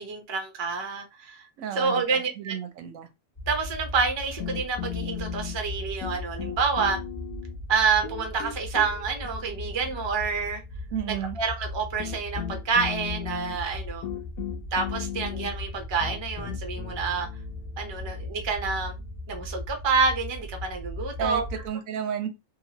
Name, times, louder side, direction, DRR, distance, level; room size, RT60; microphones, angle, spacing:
voice 1, 0.0-1.5 1.7-2.5 3.5-7.0 7.7-10.6 11.1-14.0 14.7-17.3 17.8-18.9 19.3-21.4, right 5 dB, 30° right, 0.5 m, -28 dB
voice 2, 1.6-3.1 10.9-11.4 21.2-22.3, right 8 dB, 85° right, 1.0 m, -32 dB
sound 1, 3.3-21.7, left 2 dB, 25° left, 1.1 m, -38 dB
sound 2, 4.4-5.8 6.0-7.6 8.0-10.5 11.5-11.6 12.0-19.5, left 10 dB, 85° left, 1.0 m, -38 dB
2.9 x 2.3 x 2.8 m
omnidirectional pair, 1.4 m